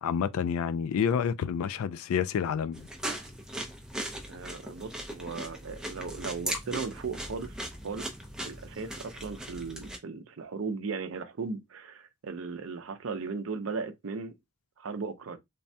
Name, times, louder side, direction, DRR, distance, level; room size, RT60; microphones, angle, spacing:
voice 1, 0.0-2.9, left 7 dB, 85° left, 0.3 m, -29 dB
sound 1, 2.7-10.0, right 1 dB, 5° right, 0.4 m, -38 dB
voice 2, 4.3-7.5 7.8-8.1 8.4-14.4 14.8-15.4, right 4 dB, 75° right, 0.5 m, -37 dB
3.3 x 2.1 x 2.6 m
head